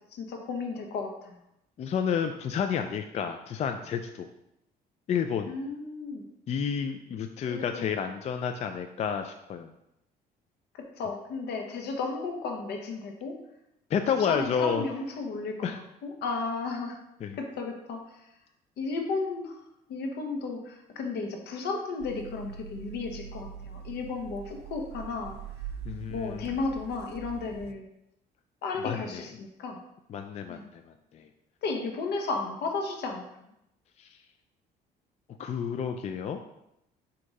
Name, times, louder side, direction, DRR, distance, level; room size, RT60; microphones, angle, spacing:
voice 1, 0.1-1.4 5.5-6.3 7.4-7.9 10.7-13.3 14.2-17.0 17.4-18.3 18.8-19.6 19.9-25.4 26.1-27.9 28.6-29.8 30.5-30.7 31.6-33.5, left 4 dB, 75° left, 2 dB, 1.1 m, -34 dB
voice 2, 1.8-4.3 5.1-5.5 6.5-9.7 13.9-14.8 15.6-15.8 17.2-17.4 25.9-26.5 28.8-29.2 30.1-30.8 31.1-31.2 34.0-34.1 35.4-36.4, left 7 dB, 40° left, 6 dB, 0.4 m, -30 dB
sound 1, 22.0-27.7, right 8 dB, 75° right, 0.4 m, -43 dB
6.2 x 2.9 x 5.3 m, 0.84 s
cardioid pair, 110°, 17 cm